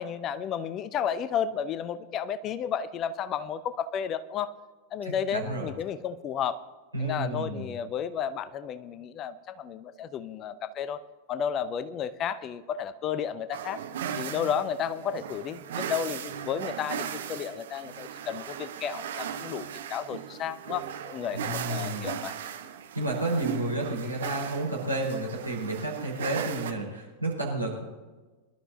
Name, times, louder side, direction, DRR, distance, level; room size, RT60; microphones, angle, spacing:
voice 1, 0.0-4.5 4.9-6.6 7.0-11.0 11.3-13.8 14.2-22.3, left 8 dB, 30° left, 14 dB, 0.7 m, -32 dB
voice 2, 5.0-5.7 6.9-7.7 21.3-22.1 22.9-27.8, right 2 dB, 85° right, -2 dB, 4.8 m, -31 dB
sound 1, 13.5-26.7, right 8 dB, 60° right, 1.0 m, -37 dB
23.0 x 12.0 x 2.8 m, 1.3 s
figure-of-eight pair, 90°, 0 cm